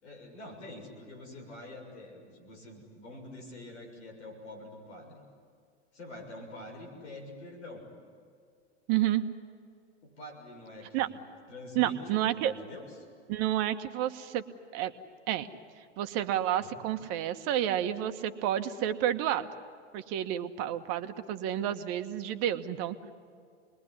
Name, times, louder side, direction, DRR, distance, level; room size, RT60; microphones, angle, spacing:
voice 1, 0.0-5.2 5.9-7.9 10.0-11.2 11.5-13.0 16.6-16.7, left 1 dB, 70° left, 4 dB, 7.1 m, -46 dB
voice 2, 8.9-9.2 10.9-11.1 11.7-12.5 13.3-14.4 14.7-14.9 15.3-15.5 16.0-19.5 19.9-23.0, right 12 dB, 45° right, 8 dB, 1.5 m, -30 dB
28.0 x 21.5 x 9.9 m, 2.2 s
hypercardioid pair, 100°, 36 cm